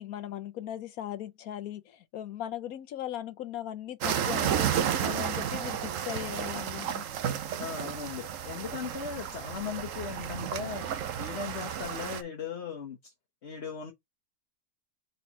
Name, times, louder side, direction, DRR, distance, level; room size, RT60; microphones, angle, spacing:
voice 1, 0.0-7.0, left 11 dB, 75° left, 1.2 m, -38 dB
sound 1, 4.0-12.2, right 9 dB, 65° right, 1.1 m, -32 dB
voice 2, 7.5-13.1 13.4-13.9, left 6 dB, 50° left, 1.4 m, -38 dB
4.3 x 4.0 x 5.5 m
omnidirectional pair, 1.5 m